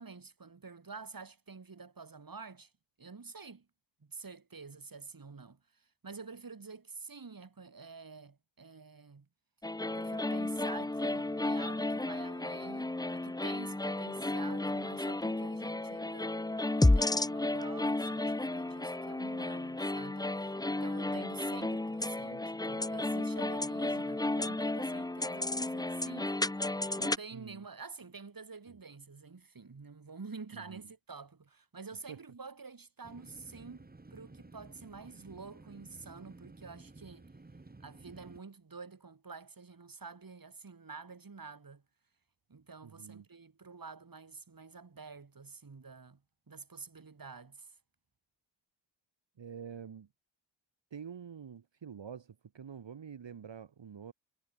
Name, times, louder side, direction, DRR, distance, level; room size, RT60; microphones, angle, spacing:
voice 1, 0.0-2.7 3.0-3.7 4.0-9.3 9.8-16.4 16.8-37.3 37.8-41.8 42.5-46.2 46.5-47.7, right 4 dB, 50° right, 1.5 m, -49 dB
sound 1, 9.6-27.2, left 2 dB, 10° left, 0.4 m, -33 dB
voice 2, 27.3-27.6 28.7-28.8 30.5-30.8 32.1-32.2 42.8-43.2 49.4-50.1 50.9-54.1, right 7 dB, 70° right, 0.9 m, -47 dB
sound 2, 33.0-38.4, right 3 dB, 20° right, 0.9 m, -54 dB
wide cardioid pair, 55°, 45 cm